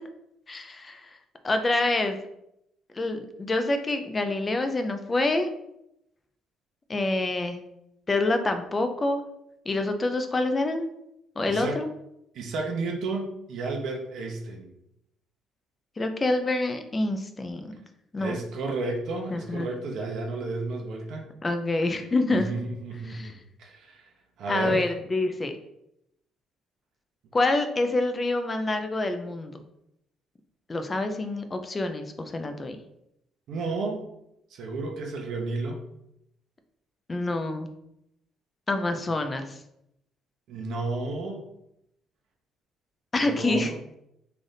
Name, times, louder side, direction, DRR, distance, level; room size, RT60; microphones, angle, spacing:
voice 1, 0.5-1.1 1.4-2.2 2.9-5.5 6.9-7.6 8.1-9.2 9.7-10.9 11.4-11.9 16.0-17.7 18.1-18.4 19.3-19.7 21.4-22.5 23.1-23.3 24.5-25.5 27.3-29.5 30.7-32.8 37.1-37.7 38.7-39.6 43.1-43.7, left 2 dB, 25° left, 7 dB, 0.4 m, -27 dB
voice 2, 11.5-11.8 12.3-14.7 18.2-21.3 22.3-24.0 24.4-24.9 33.5-34.1 34.5-35.8 40.5-41.4 43.2-43.7, right 3 dB, 65° right, 1 dB, 0.7 m, -32 dB
3.3 x 2.6 x 3.9 m, 0.80 s
cardioid pair, 110°, 0 cm